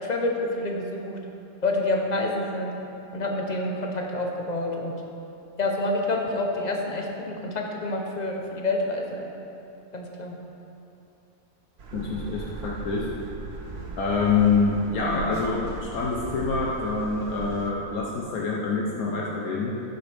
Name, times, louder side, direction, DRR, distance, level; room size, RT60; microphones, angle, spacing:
voice 1, 0.1-1.2 1.6-2.7 3.1-4.9 5.6-9.3 9.9-10.4, left 2 dB, 35° left, 1 dB, 1.0 m, -28 dB
sound 1, 11.8-17.7, right 3 dB, 50° right, 1.0 m, -38 dB
voice 2, 11.9-13.1 14.0-19.7, left 4 dB, 80° left, -3 dB, 1.4 m, -26 dB
11.5 x 9.1 x 3.5 m, 2.8 s
omnidirectional pair, 1.5 m